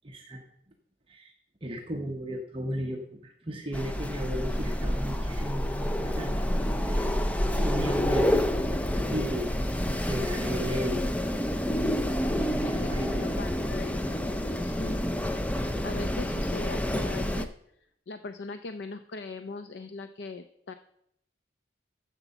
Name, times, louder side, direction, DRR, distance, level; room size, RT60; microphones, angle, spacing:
voice 1, 0.0-0.4 1.1-1.3 1.6-6.4 6.8-7.2 7.6-8.4 9.1-9.5 9.9-11.2 12.6-13.2, equal, 30° right, 1 dB, 0.9 m, -35 dB
Wind, 3.7-17.5, equal, 10° left, 0.4 m, -28 dB
voice 2, 12.6-15.0 15.5-17.5 18.1-20.7, left 3 dB, 65° left, 10 dB, 0.5 m, -40 dB
8.1 x 7.3 x 6.9 m, 0.74 s
head